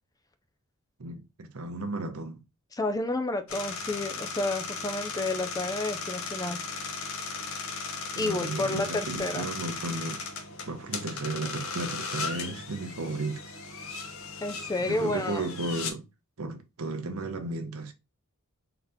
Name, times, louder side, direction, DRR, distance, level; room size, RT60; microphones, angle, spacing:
voice 1, 1.0-2.4 8.1-10.3 10.7-13.5 14.8-16.1 16.4-17.9, right 2 dB, 85° right, 0.8 m, -34 dB
voice 2, 2.7-6.6 8.2-9.5 14.4-15.4, left 2 dB, 15° left, 0.4 m, -30 dB
sound 1, 3.5-15.9, left 4 dB, 70° left, 0.8 m, -37 dB
4.0 x 2.8 x 3.3 m
head